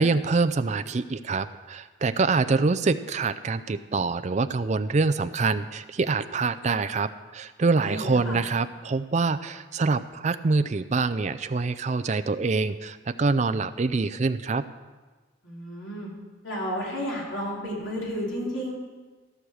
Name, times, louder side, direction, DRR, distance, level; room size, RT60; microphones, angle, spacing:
voice 1, 0.0-14.7, right 4 dB, 35° right, 13 dB, 0.4 m, -25 dB
voice 2, 7.8-8.4 15.4-16.1 16.4-18.7, equal, 75° left, -3 dB, 3.4 m, -32 dB
15.0 x 6.3 x 6.5 m, 1.3 s
head